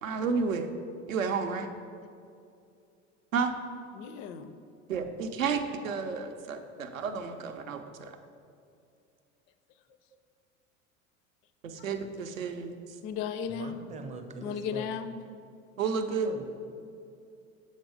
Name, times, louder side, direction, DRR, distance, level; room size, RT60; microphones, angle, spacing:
voice 1, 0.0-0.7 1.1-1.7 3.3-3.5 4.9-7.8 11.6-12.7 15.8-16.3, right 5 dB, 80° right, 7 dB, 0.6 m, -31 dB
voice 2, 3.9-4.6 11.8-11.9 13.0-13.8 14.4-15.1, left 7 dB, 35° left, 11 dB, 0.4 m, -35 dB
voice 3, 13.5-14.9 16.1-16.6, right 3 dB, 20° right, 5 dB, 0.5 m, -42 dB
6.4 x 4.1 x 4.7 m, 2.5 s
figure-of-eight pair, 70°, 40 cm